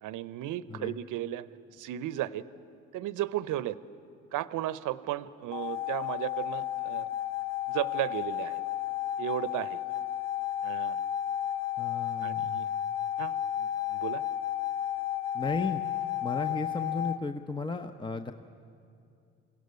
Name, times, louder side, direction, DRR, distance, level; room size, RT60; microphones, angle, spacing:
voice 1, 0.0-1.5 1.8-2.4 2.9-3.8 4.3-7.1 7.7-8.6 9.2-9.8 10.6-11.0 12.2-12.7 13.2-14.2 16.5-16.6, right 14 dB, 65° right, 17 dB, 0.8 m, -34 dB
sound 1, 5.5-17.2, left 11 dB, 45° left, 0.8 m, -32 dB
voice 2, 11.8-12.6 15.3-15.8 16.2-18.3, left 3 dB, 15° left, 7 dB, 0.8 m, -34 dB
21.5 x 16.5 x 9.6 m, 2.6 s
hypercardioid pair, 60°, 34 cm